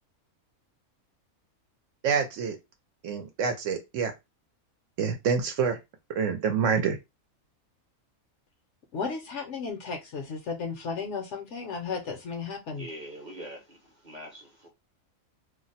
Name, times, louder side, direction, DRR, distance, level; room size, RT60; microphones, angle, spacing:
voice 1, 2.0-2.6 3.0-4.1 5.0-5.8 6.1-7.0, right 6 dB, 70° right, 0.9 m, -27 dB
voice 2, 8.9-12.9, left 5 dB, 65° left, 0.8 m, -34 dB
voice 3, 12.7-14.7, equal, 40° right, 0.7 m, -43 dB
2.5 x 2.0 x 3.9 m
omnidirectional pair, 1.5 m